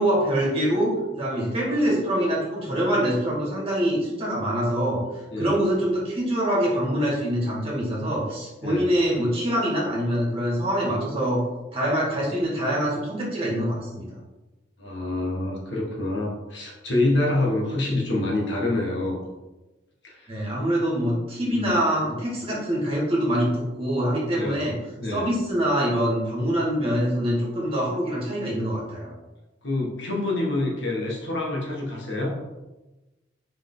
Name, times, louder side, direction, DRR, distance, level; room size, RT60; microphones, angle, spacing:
voice 1, 0.0-5.0 5.4-11.4 11.7-14.1 20.3-24.8 25.1-29.1, equal, 30° right, -5 dB, 2.3 m, -24 dB
voice 2, 14.8-19.2 20.0-20.3 21.4-21.8 24.3-24.6 25.0-25.3 29.6-32.4, left 2 dB, 70° left, -3 dB, 1.8 m, -26 dB
5.5 x 5.0 x 3.9 m, 1.1 s
head